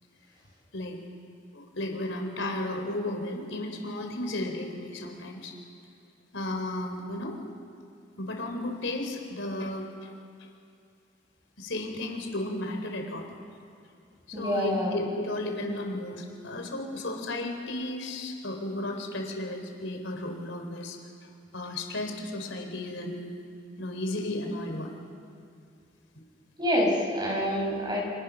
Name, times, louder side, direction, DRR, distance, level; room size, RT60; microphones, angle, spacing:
voice 1, 1.5-5.5 6.3-7.4 8.2-10.1 11.6-13.2 14.3-23.3 23.8-24.9, left 1 dB, 80° left, 3 dB, 3.9 m, -34 dB
voice 2, 14.3-15.0 26.6-28.0, equal, 20° right, -1 dB, 6.5 m, -26 dB
29.5 x 27.0 x 6.4 m, 2.4 s
head